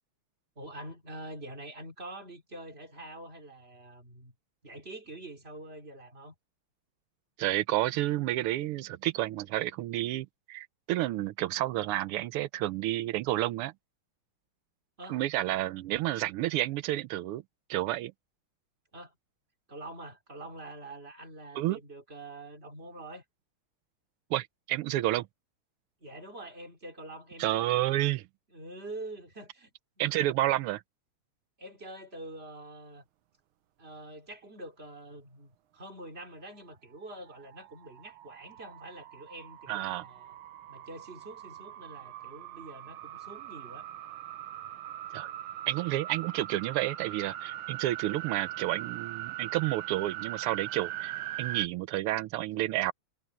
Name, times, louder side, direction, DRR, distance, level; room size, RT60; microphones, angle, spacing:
voice 1, 0.5-4.3 4.6-6.3 15.0-15.2 18.9-19.2 19.7-23.2 26.0-27.7 28.5-29.7 31.6-33.0 33.8-40.4 40.7-43.9, right 2 dB, 25° right, 3.4 m, -45 dB
voice 2, 7.4-13.7 15.1-17.4 17.7-18.1 21.5-21.8 24.3-25.3 27.4-28.3 30.0-30.8 39.7-40.1 45.1-45.3 45.7-51.1 51.4-52.9, right 15 dB, 90° right, 1.6 m, -30 dB
sound 1, 37.2-51.7, right 13 dB, 75° right, 1.7 m, -41 dB
omnidirectional pair, 2.4 m